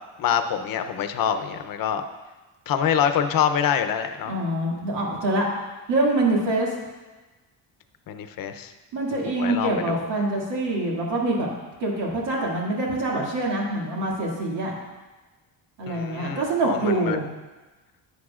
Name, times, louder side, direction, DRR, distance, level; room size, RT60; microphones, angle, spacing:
voice 1, 0.2-2.0 2.7-4.3 8.1-8.7 9.4-10.0 15.9-17.3, left 8 dB, 50° left, 8 dB, 0.7 m, -25 dB
voice 2, 4.3-5.5 5.9-6.7 8.9-11.5 11.8-14.7 15.8-17.2, right 2 dB, 80° right, -3 dB, 2.4 m, -25 dB
11.0 x 8.1 x 2.4 m, 1.2 s
cardioid pair, 115°, 43 cm